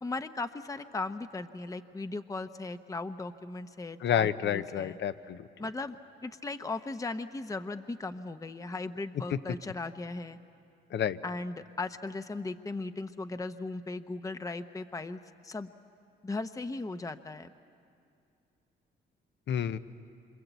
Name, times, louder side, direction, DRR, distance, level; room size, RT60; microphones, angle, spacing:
voice 1, 0.0-5.0 5.6-10.4 11.2-15.7 16.2-17.5, left 3 dB, 15° left, 10 dB, 0.8 m, -37 dB
voice 2, 4.0-5.5 10.9-11.2 19.5-19.8, left 9 dB, 65° left, 12 dB, 0.9 m, -29 dB
27.5 x 26.0 x 8.2 m, 2.5 s
cardioid pair, 90°, 20 cm